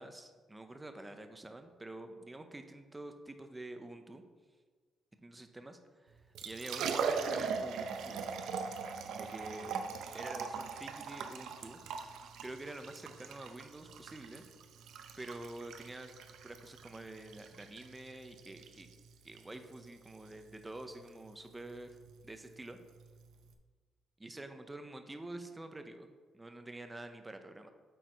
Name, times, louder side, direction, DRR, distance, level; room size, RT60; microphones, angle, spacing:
voice 1, 0.0-4.2 5.2-8.2 9.1-9.8 10.1-11.8 12.4-14.5 15.2-16.1 16.4-18.9 19.2-21.9 22.2-22.8 24.2-26.1 26.3-27.7, right 2 dB, 15° right, 7 dB, 0.6 m, -47 dB
Liquid, 6.2-23.5, right 5 dB, 85° right, 0.6 m, -41 dB
8.0 x 4.7 x 4.5 m, 1.5 s
cardioid pair, 140°, 0 cm